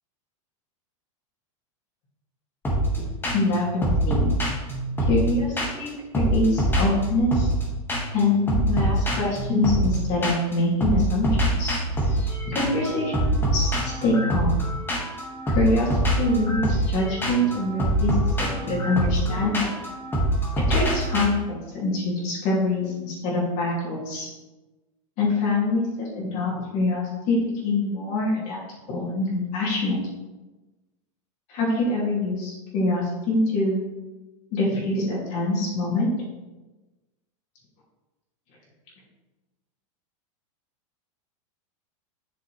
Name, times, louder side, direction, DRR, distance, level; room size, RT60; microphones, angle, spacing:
sound 1, 2.6-3.0 3.2-3.5 3.8-5.9 6.1-7.6 7.9-8.2 8.5-10.5 10.8-21.2, right 1 dB, 15° left, 1.7 m, -25 dB
voice 1, 3.3-4.3 5.1-7.5 8.1-11.7 12.5-14.5 15.5-15.9 16.2-19.7 20.7-24.3 25.2-28.6 28.9-30.0 31.5-33.8 34.5-36.1, left 2 dB, 45° left, -5 dB, 2.6 m, -25 dB
7.8 x 5.8 x 3.3 m, 1.1 s
supercardioid pair, 130°, 17 cm